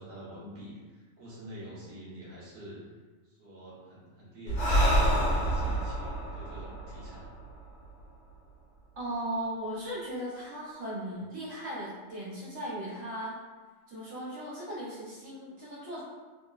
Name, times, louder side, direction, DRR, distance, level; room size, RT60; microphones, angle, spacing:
voice 1, 0.0-2.8 3.2-5.0 5.3-7.3, equal, 45° right, -8 dB, 0.9 m, -47 dB
Breathing, 4.5-8.0, right 1 dB, 65° left, 0.9 m, -28 dB
voice 2, 9.0-13.4 13.9-16.0, right 1 dB, 80° right, -9 dB, 1.3 m, -37 dB
3.2 x 2.0 x 2.3 m, 1.3 s
omnidirectional pair, 1.3 m